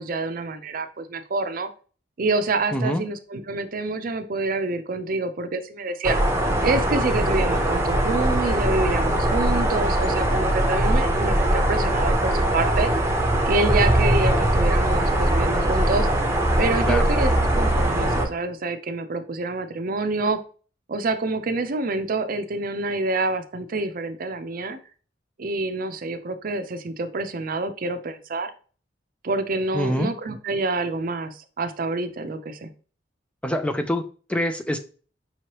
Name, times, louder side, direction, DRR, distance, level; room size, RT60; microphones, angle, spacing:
voice 1, 0.0-1.7 2.2-6.2 6.6-12.9 13.5-16.1 16.6-20.4 20.9-24.8 25.4-28.5 29.2-32.7, right 3 dB, 50° right, 9 dB, 0.5 m, -27 dB
voice 2, 2.7-3.0 16.9-17.0 29.7-30.1 33.4-34.8, left 1 dB, 5° left, 7 dB, 0.3 m, -25 dB
sound 1, 6.0-18.3, right 1 dB, 15° right, 0.8 m, -21 dB
5.5 x 3.1 x 2.9 m, 0.38 s
head